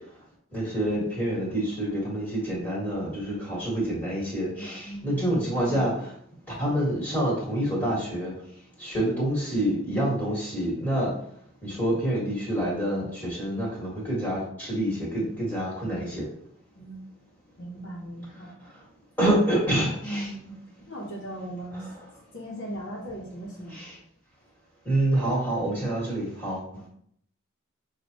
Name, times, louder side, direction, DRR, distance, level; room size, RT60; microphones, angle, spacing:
voice 1, 0.5-6.1 6.5-8.3 8.8-11.1 11.6-16.3 19.2-20.3 21.7-21.9 23.7-24.0 24.9-26.6, right 1 dB, 10° left, -6 dB, 1.8 m, -27 dB
voice 2, 4.8-5.3 16.8-17.0 17.6-18.6 20.0-20.6 20.9-21.9 22.3-23.8 26.7-26.9, right 1 dB, 55° left, -4 dB, 1.0 m, -38 dB
6.2 x 2.5 x 3.0 m, 0.64 s
head